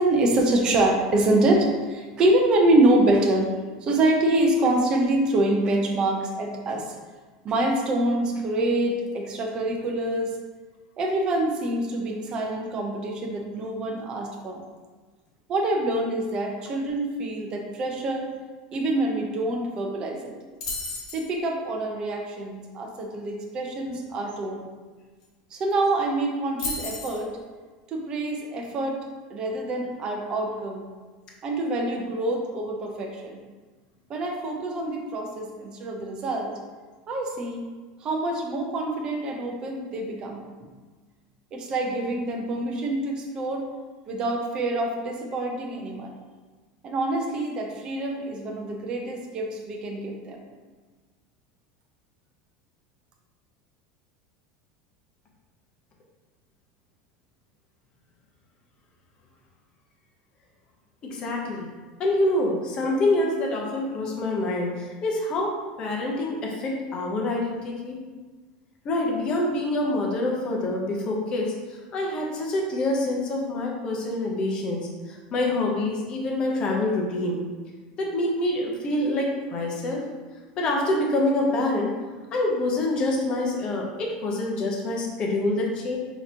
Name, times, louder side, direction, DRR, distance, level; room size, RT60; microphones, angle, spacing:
voice 1, 0.0-3.5 3.8-6.9 7.4-10.3 11.0-14.6 15.5-18.3 18.7-20.3 21.1-24.7 25.5-27.3 27.9-29.0 29.3-30.9 31.4-33.4 34.1-36.5 37.1-37.7 38.0-40.7 41.5-43.6 44.1-46.1 46.8-50.5, right 1 dB, 25° right, 1 dB, 0.6 m, -25 dB
sound 1, 20.6-21.3 25.2-25.3 25.5-25.9 26.6-27.2, left 3 dB, 90° left, 1.2 m, -32 dB
voice 2, 61.0-61.7 62.0-68.0 68.8-71.5 71.9-77.4 78.0-80.0 80.6-81.9 82.3-86.0, left 2 dB, 25° left, -1 dB, 0.8 m, -26 dB
6.3 x 2.9 x 2.8 m, 1.4 s
supercardioid pair, 175°, 3 cm